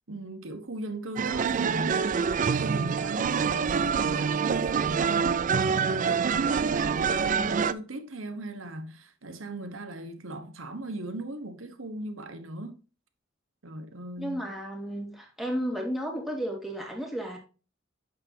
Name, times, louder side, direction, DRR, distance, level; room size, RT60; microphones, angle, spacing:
voice 1, 0.1-2.1 2.5-12.8 13.6-14.5, right 1 dB, 85° right, 1.2 m, -38 dB
sound 1, 1.2-7.7, right 6 dB, 40° right, 0.4 m, -26 dB
voice 2, 14.2-17.4, equal, ahead, 2.1 m, -33 dB
8.7 x 6.8 x 2.8 m
head